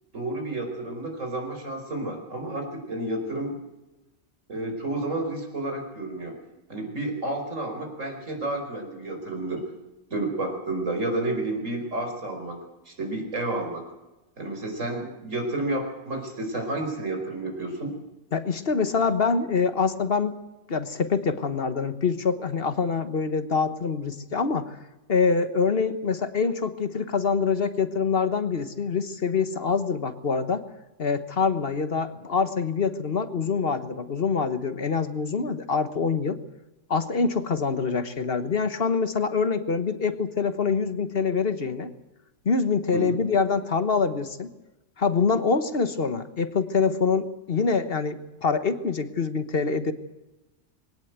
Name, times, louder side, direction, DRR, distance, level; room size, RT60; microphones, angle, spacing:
voice 1, 0.1-3.6 4.5-6.4 6.7-9.6 10.1-12.6 12.9-13.9 14.4-17.9 42.9-43.0, right 2 dB, 90° right, 4 dB, 5.2 m, -30 dB
voice 2, 18.3-20.3 20.7-24.8 25.1-30.6 31.0-36.4 36.9-41.9 42.4-44.5 45.0-49.9, left 5 dB, 50° left, 11 dB, 1.3 m, -25 dB
21.5 x 17.5 x 8.1 m, 1.0 s
omnidirectional pair, 1.3 m